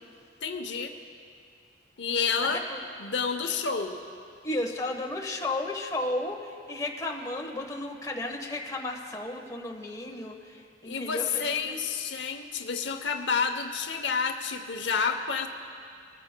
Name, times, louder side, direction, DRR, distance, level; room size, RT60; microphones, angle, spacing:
voice 1, 0.4-1.0 2.0-2.7 3.0-4.0 10.8-15.5, left 5 dB, 85° left, 6 dB, 0.8 m, -29 dB
voice 2, 2.4-2.8 4.4-11.8, left 2 dB, 20° left, 1 dB, 1.1 m, -34 dB
21.0 x 14.5 x 2.2 m, 2.3 s
head